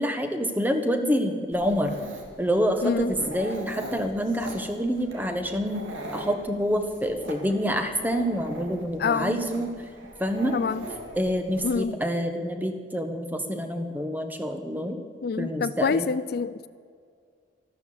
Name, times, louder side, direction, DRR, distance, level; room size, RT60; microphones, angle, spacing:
voice 1, 0.0-1.9 2.4-5.8 6.1-9.7 10.2-10.6 11.1-15.0 15.4-16.1, equal, 10° right, 6 dB, 1.2 m, -27 dB
Dog, 1.5-11.8, right 1 dB, 90° right, 2.6 m, -41 dB
voice 2, 2.8-3.1 9.0-9.4 10.5-10.8 11.6-12.0 15.2-16.7, left 5 dB, 50° left, 15 dB, 0.3 m, -26 dB
14.0 x 13.0 x 7.8 m, 2.1 s
head